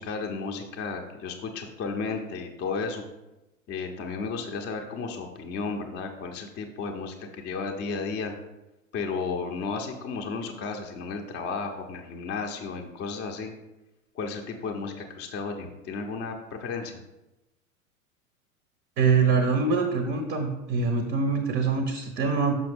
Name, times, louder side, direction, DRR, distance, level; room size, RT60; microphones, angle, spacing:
voice 1, 0.0-3.0 3.7-8.3 8.9-13.5 14.1-17.0, left 4 dB, 25° left, 3 dB, 0.7 m, -33 dB
voice 2, 19.0-22.6, right 5 dB, 25° right, 5 dB, 0.7 m, -24 dB
6.2 x 5.5 x 3.5 m, 0.99 s
figure-of-eight pair, 90°, 42 cm